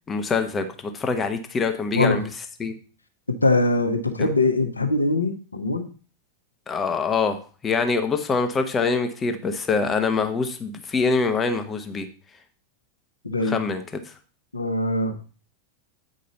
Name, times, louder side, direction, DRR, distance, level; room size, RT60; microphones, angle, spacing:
voice 1, 0.1-2.2 2.6-2.7 4.2-4.3 6.7-12.1 13.4-14.1, left 4 dB, 20° left, 7 dB, 1.0 m, -24 dB
voice 2, 3.3-5.8 13.2-13.6 14.5-15.2, left 2 dB, 80° left, 7 dB, 1.0 m, -22 dB
8.6 x 5.2 x 4.0 m, 0.38 s
figure-of-eight pair, 90°, 0 cm